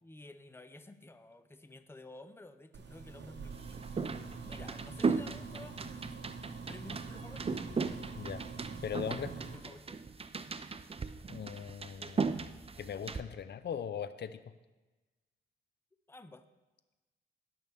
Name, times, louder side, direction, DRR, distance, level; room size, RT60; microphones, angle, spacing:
voice 1, 0.0-3.9 4.4-6.0 6.7-7.6 9.2-10.0 16.1-16.4, left 2 dB, 10° left, 10 dB, 0.8 m, -52 dB
Alien Spaceship Ambient, 2.7-9.6, right 4 dB, 60° right, 1.2 m, -45 dB
sound 1, 3.5-13.2, right 4 dB, 30° right, 0.6 m, -37 dB
voice 2, 8.8-9.3 11.3-12.3 12.8-14.5, left 8 dB, 55° left, 12 dB, 0.7 m, -39 dB
18.0 x 6.1 x 3.6 m, 1.2 s
cardioid pair, 65°, 20 cm